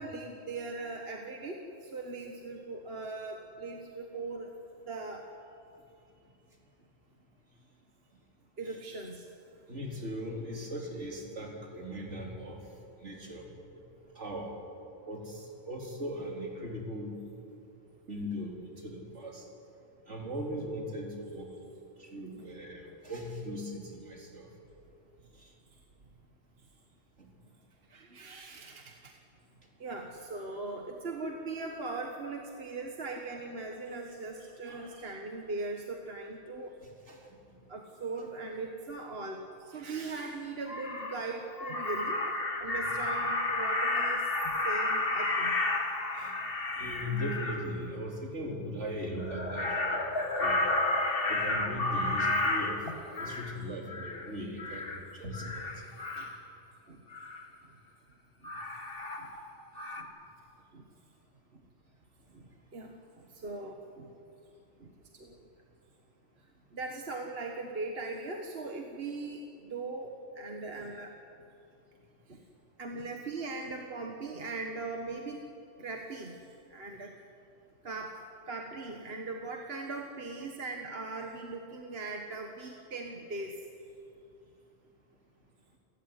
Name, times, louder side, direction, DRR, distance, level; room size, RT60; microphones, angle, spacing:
voice 1, 0.0-4.5 4.9-5.2 8.6-9.3 27.9-29.1 29.8-36.7 37.7-42.2 42.6-44.3 44.6-45.6 53.2-53.4 54.0-54.1 55.4-55.5 56.2-56.4 56.9-57.0 58.4-58.5 59.2-59.3 60.0-60.1 60.7-60.8 61.5-61.6 62.3-64.1 64.8-65.5 66.7-71.1 72.3-72.4 72.8-75.4 75.8-76.4 76.7-77.1 77.8-78.2 78.5-83.6, right 3 dB, 55° right, 2 dB, 1.8 m, -40 dB
voice 2, 9.7-12.7 13.0-13.5 14.1-14.5 15.1-17.2 18.1-19.5 20.1-21.5 22.0-24.5 25.3-25.5 27.2-27.3 34.6-35.0 37.1-37.7 42.8-42.9 46.1-46.4 46.8-50.6 51.3-52.8 53.2-55.8, equal, 75° right, -1 dB, 4.1 m, -39 dB
Crow, 40.2-40.3 40.7-41.2 41.6-47.6 49.2-53.5 53.9-54.3 54.6-55.0 55.3-56.4 57.1-57.4 58.4-59.5 59.8-60.0, left 2 dB, 50° left, 2.1 m, -31 dB
28.0 x 15.0 x 9.7 m, 2.6 s
omnidirectional pair, 1.2 m